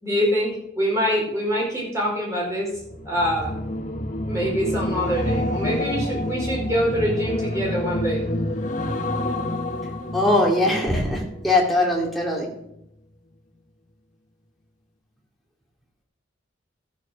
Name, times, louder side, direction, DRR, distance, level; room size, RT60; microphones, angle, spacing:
voice 1, 0.0-0.5 0.7-2.7 3.0-3.6 4.2-8.3 10.9-11.0, equal, 15° right, -4 dB, 5.0 m, -24 dB
sound 1, 2.7-12.1 12.5-12.8, left 1 dB, 40° left, 1.1 m, -28 dB
voice 2, 10.1-12.5, left 1 dB, ahead, -3 dB, 2.5 m, -21 dB
13.5 x 7.4 x 6.3 m, 0.79 s
head